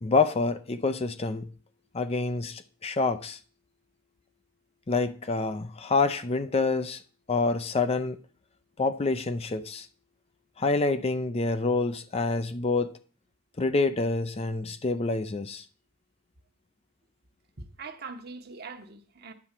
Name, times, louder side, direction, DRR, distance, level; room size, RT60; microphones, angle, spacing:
voice 1, 0.0-1.5 1.9-3.4 4.9-7.0 7.3-8.2 8.8-9.9 10.6-12.9 13.6-15.6, left 3 dB, 30° left, 0.5 m, -27 dB
voice 2, 17.6-19.3, right 4 dB, 50° right, 1.1 m, -42 dB
9.6 x 4.2 x 7.4 m
head